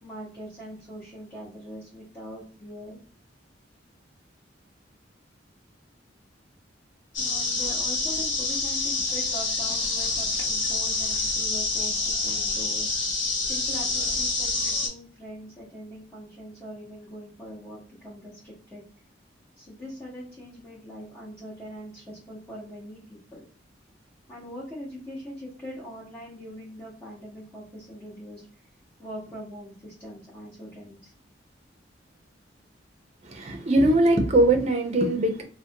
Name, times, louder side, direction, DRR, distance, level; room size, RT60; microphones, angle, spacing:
voice 1, 0.0-3.0 7.2-12.9 13.4-18.8 19.6-23.5 24.3-28.4 29.0-31.1, equal, 15° left, -8 dB, 0.8 m, -42 dB
sound 1, 7.1-14.9, left 3 dB, 85° left, 0.9 m, -27 dB
voice 2, 33.2-35.4, right 1 dB, 35° right, 4 dB, 0.5 m, -21 dB
2.4 x 2.1 x 2.7 m, 0.41 s
head